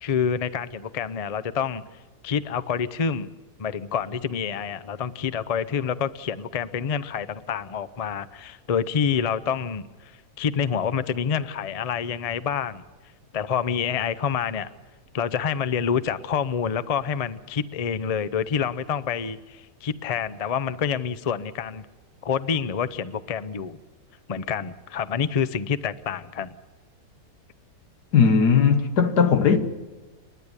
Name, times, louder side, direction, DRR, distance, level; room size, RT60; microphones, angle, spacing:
voice 1, 0.0-3.3 3.6-12.8 13.3-14.7 15.1-21.9 22.2-23.8 24.3-26.6, left 7 dB, 55° left, 0.4 m, -27 dB
voice 2, 28.1-29.6, left 6 dB, 90° left, 1.8 m, -18 dB
30.0 x 10.5 x 9.7 m
omnidirectional pair, 1.7 m